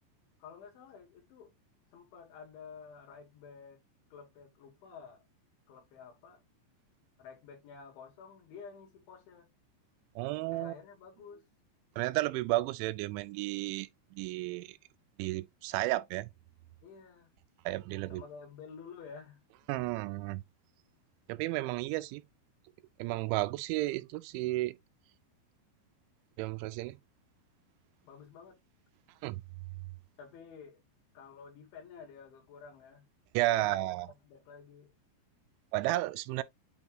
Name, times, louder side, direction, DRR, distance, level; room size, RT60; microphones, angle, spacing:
voice 1, 0.4-1.5 1.9-3.8 4.1-5.3 5.7-6.4 7.2-9.5 10.5-11.5 16.8-17.3 18.1-19.4 28.0-28.6 30.2-30.8 31.1-33.1 33.5-34.9, left 6 dB, 80° left, 4.8 m, -51 dB
voice 2, 10.2-10.7 12.0-14.8 15.2-16.3 17.7-18.2 19.7-20.4 21.3-22.2 23.0-24.8 26.4-27.0 29.2-29.4 33.3-34.1 35.7-36.4, right 18 dB, 90° right, 3.0 m, -32 dB
8.9 x 3.0 x 3.9 m
omnidirectional pair, 5.3 m